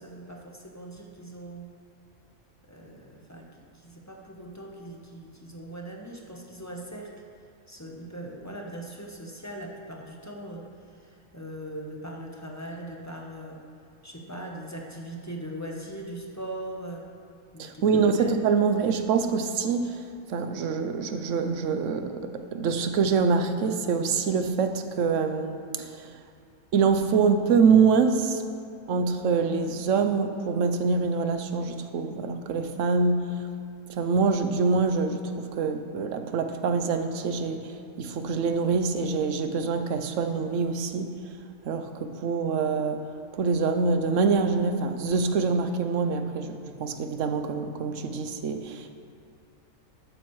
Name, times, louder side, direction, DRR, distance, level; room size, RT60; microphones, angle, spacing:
voice 1, 0.0-1.7 2.7-7.1 7.7-13.6 14.0-17.1 17.5-18.4, right 1 dB, 15° left, 0 dB, 0.7 m, -40 dB
voice 2, 17.6-26.2 26.7-28.4 28.9-33.5 33.9-41.2 41.6-43.0 43.3-48.9, right 5 dB, 65° right, 8 dB, 1.0 m, -25 dB
13.0 x 8.9 x 3.1 m, 2.4 s
omnidirectional pair, 1.5 m